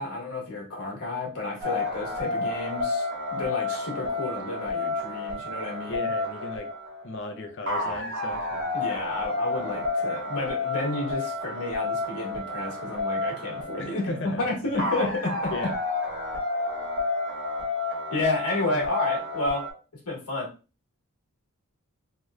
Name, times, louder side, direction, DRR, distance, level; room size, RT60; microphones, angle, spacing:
voice 1, 0.0-3.1 3.3-6.1 8.7-15.5 18.1-19.7 20.0-20.5, left 2 dB, 90° left, -2 dB, 1.2 m, -31 dB
sound 1, 1.6-19.7, left 2 dB, 55° right, 1.3 m, -30 dB
voice 2, 5.9-6.7 7.0-8.7 13.8-14.4 14.7-14.9 15.5-15.7 18.7-18.8, left 2 dB, 55° left, 4 dB, 0.6 m, -36 dB
3.1 x 2.8 x 2.3 m, 0.33 s
head